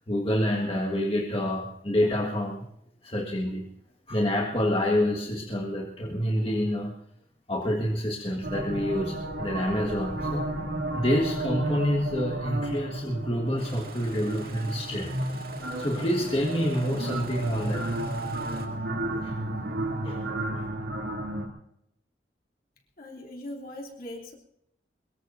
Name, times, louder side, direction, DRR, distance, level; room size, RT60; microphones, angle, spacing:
voice 1, 0.1-2.7 3.0-3.7 4.1-6.9 7.5-10.5 10.9-15.3 15.8-18.0 19.2-19.4 20.0-20.2 20.5-20.7, equal, 30° left, -2 dB, 1.6 m, -27 dB
sound 1, 8.4-21.5, right 1 dB, 85° right, 2.8 m, -32 dB
Engine starting, 13.6-18.7, right 3 dB, 55° right, 2.2 m, -45 dB
voice 2, 23.0-24.3, left 1 dB, 50° left, -1 dB, 2.9 m, -40 dB
23.5 x 22.0 x 2.7 m, 0.73 s
head